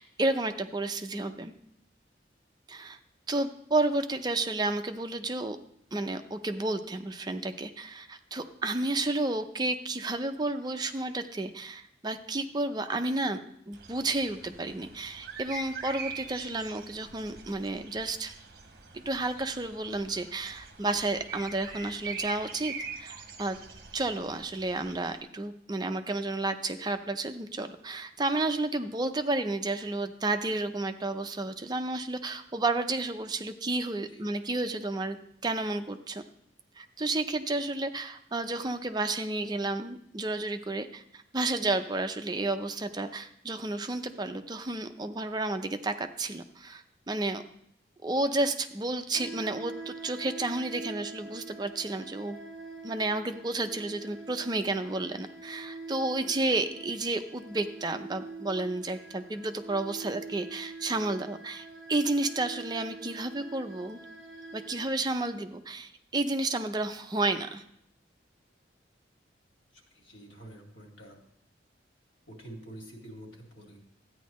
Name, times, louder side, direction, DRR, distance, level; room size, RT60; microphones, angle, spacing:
voice 1, 0.0-1.5 2.7-3.0 3.3-5.6 5.9-13.4 13.7-18.3 18.9-23.6 23.9-35.2 35.4-36.2 36.8-47.4 48.0-52.4 52.8-64.0 64.5-67.6, right 2 dB, 20° right, 7 dB, 0.5 m, -31 dB
sound 1, 13.7-25.2, right 4 dB, 50° right, 1.0 m, -43 dB
sound 2, 49.1-64.8, right 3 dB, 5° right, 2.0 m, -45 dB
voice 2, 69.7-71.2 72.3-73.8, right 1 dB, 90° left, 0 dB, 2.5 m, -47 dB
13.5 x 9.3 x 3.1 m, 0.70 s
head